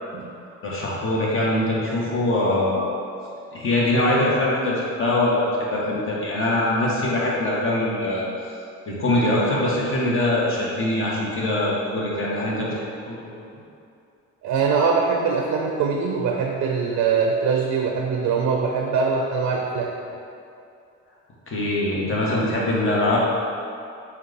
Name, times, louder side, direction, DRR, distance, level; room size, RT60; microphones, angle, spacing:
voice 1, 0.6-3.0 3.5-8.2 8.9-13.6 21.5-23.2, left 1 dB, 45° left, -5 dB, 1.1 m, -23 dB
voice 2, 14.4-19.9, right 5 dB, 65° right, 1 dB, 0.4 m, -22 dB
4.5 x 2.3 x 3.9 m, 2.6 s
cardioid pair, 90°, 30 cm